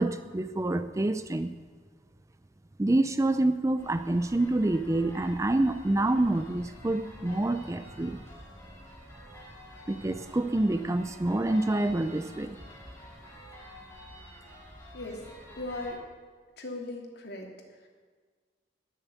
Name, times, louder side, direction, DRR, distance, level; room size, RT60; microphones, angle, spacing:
voice 1, 0.0-1.5 2.8-8.2 9.9-12.6, right 2 dB, 15° right, 10 dB, 0.4 m, -27 dB
sound 1, 3.8-15.9, left 1 dB, 15° left, 3.2 m, -48 dB
voice 2, 15.6-16.0 16.6-17.5, left 2 dB, 60° left, 1 dB, 2.8 m, -37 dB
18.5 x 7.4 x 8.3 m, 1.5 s
head